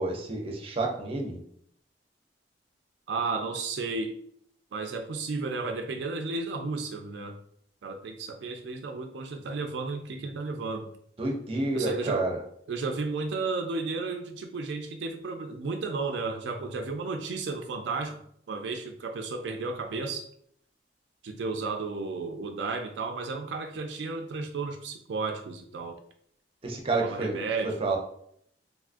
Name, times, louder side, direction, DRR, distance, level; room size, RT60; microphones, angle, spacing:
voice 1, 0.0-1.4 11.2-12.4 26.6-27.4 27.6-28.0, right 2 dB, 35° right, 1 dB, 0.5 m, -29 dB
voice 2, 3.1-4.1 4.7-7.4 7.8-10.9 11.7-12.3 12.7-18.2 18.5-20.2 21.2-26.0 27.0-27.8, right 3 dB, 80° right, 4 dB, 0.4 m, -33 dB
3.5 x 2.3 x 2.4 m, 0.67 s
head